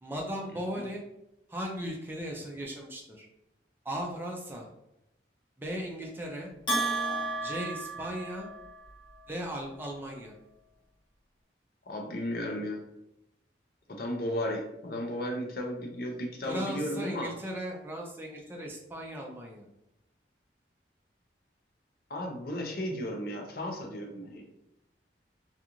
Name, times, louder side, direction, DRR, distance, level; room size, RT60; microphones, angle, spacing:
voice 1, 0.0-1.0 1.5-3.3 3.8-4.7 5.6-6.5 7.4-8.5 9.3-10.3 16.5-19.7, equal, 10° right, -1 dB, 0.4 m, -37 dB
Bell, 6.7-8.8, right 2 dB, 25° left, 0.9 m, -32 dB
voice 2, 11.9-12.8 13.9-17.3 22.1-24.5, equal, 55° left, 2 dB, 0.5 m, -34 dB
2.4 x 2.4 x 2.9 m, 0.84 s
head